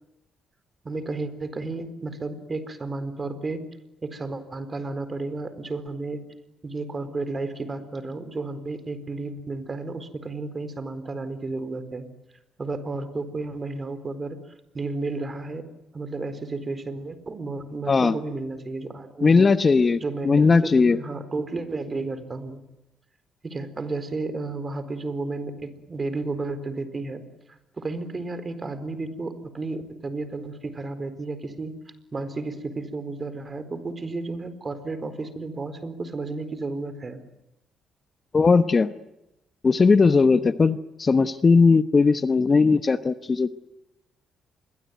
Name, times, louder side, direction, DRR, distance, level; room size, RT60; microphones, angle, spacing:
voice 1, 0.8-3.6 4.0-6.2 6.6-12.1 12.6-14.4 14.7-15.6 15.9-19.5 20.0-22.6 23.4-27.2 27.5-31.7 32.1-37.2, right 3 dB, 30° right, 12 dB, 4.3 m, -32 dB
voice 2, 19.2-21.0 38.3-38.9 39.6-43.5, left 4 dB, 35° left, 12 dB, 1.1 m, -18 dB
27.5 x 22.5 x 9.5 m, 0.87 s
cardioid pair, 90°, 0 cm